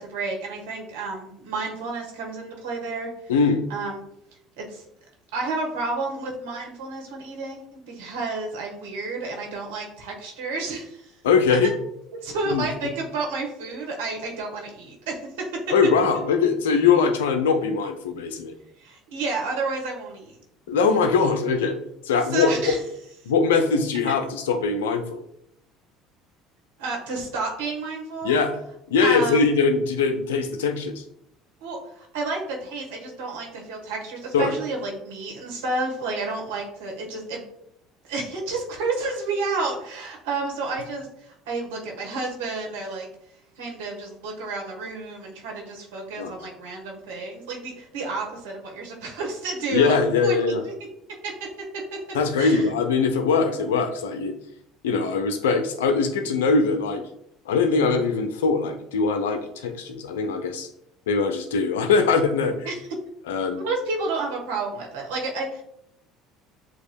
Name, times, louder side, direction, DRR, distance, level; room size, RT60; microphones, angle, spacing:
voice 1, 0.0-3.1 3.7-4.0 4.6-4.8 5.3-11.2 11.6-11.7 12.2-15.6 18.8-20.4 22.2-22.8 26.8-28.4 29.0-29.5 31.6-37.4 38.0-43.1 43.6-50.0 50.2-50.7 51.2-51.5 51.7-52.7 62.6-62.9 63.6-65.6, right 3 dB, 75° right, 0 dB, 1.3 m, -31 dB
voice 2, 3.3-3.6 11.2-11.7 12.5-12.7 15.7-18.5 20.7-21.8 22.0-22.8 23.3-25.2 28.2-28.6 28.9-31.0 34.3-34.5 46.2-46.3 49.7-50.6 52.1-54.3 54.8-57.0 57.5-60.7 61.1-62.5 63.3-63.7, left 5 dB, 80° left, 7 dB, 0.6 m, -22 dB
7.9 x 2.9 x 2.3 m, 0.76 s
hypercardioid pair, 65°, 0 cm